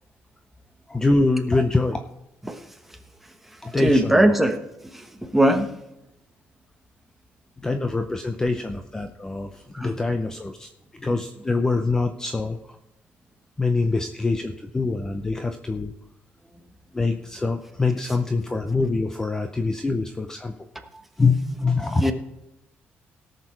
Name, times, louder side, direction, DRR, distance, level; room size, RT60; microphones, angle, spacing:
voice 1, 0.9-2.0 3.6-4.3 7.6-10.7 11.0-12.8 13.6-15.9 16.9-20.5 21.2-22.1, left 3 dB, 15° left, 6 dB, 0.6 m, -24 dB
voice 2, 3.8-4.6 4.9-5.7 9.7-9.9 22.0-22.1, right 1 dB, 5° right, 6 dB, 1.1 m, -20 dB
17.5 x 6.7 x 4.5 m, 0.89 s
cardioid pair, 155°, 4 cm